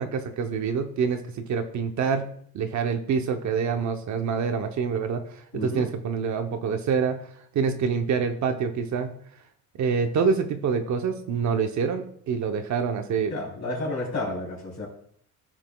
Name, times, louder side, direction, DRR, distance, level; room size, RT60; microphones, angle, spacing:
voice 1, 0.0-2.3 2.5-5.2 5.5-7.2 7.5-9.1 9.8-13.3, right 6 dB, 50° right, 6 dB, 0.8 m, -26 dB
voice 2, 5.5-5.9 13.3-14.9, left 2 dB, 50° left, -2 dB, 3.3 m, -31 dB
15.0 x 5.8 x 2.3 m, 0.62 s
cardioid pair, 150°, 36 cm